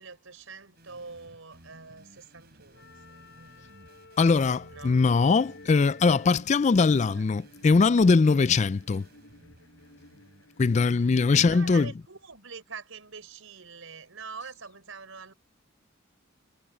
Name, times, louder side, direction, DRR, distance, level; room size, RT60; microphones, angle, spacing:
voice 1, 0.0-3.7 4.7-5.0 7.0-7.2 10.8-15.3, right 5 dB, 75° right, 4.1 m, -45 dB
sound 1, 0.8-12.3, right 1 dB, 50° right, 5.5 m, -56 dB
Wind instrument woodwind instrument, 2.7-6.4, left 3 dB, 55° left, 6.7 m, -51 dB
voice 2, 4.2-9.1 10.6-11.9, left 4 dB, 35° left, 0.3 m, -21 dB
Bowed string instrument, 5.3-11.9, left 1 dB, 75° left, 6.3 m, -55 dB
head